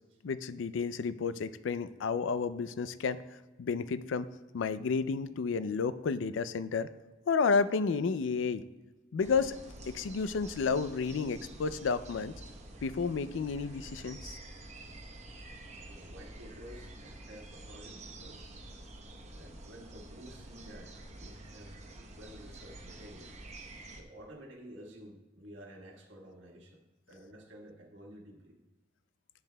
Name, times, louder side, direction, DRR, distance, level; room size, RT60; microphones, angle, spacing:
voice 1, 0.2-3.2 3.6-4.3 4.5-6.9 7.3-8.6 9.1-9.6 9.9-12.3 12.8-14.4, left 5 dB, 80° left, 14 dB, 0.4 m, -31 dB
sound 1, 9.2-24.0, right 2 dB, 40° right, 0.9 m, -48 dB
voice 2, 15.9-18.5 18.8-18.9 19.3-23.3 24.0-28.6, equal, 80° right, -1 dB, 1.6 m, -51 dB
10.5 x 9.6 x 2.2 m, 1.2 s
head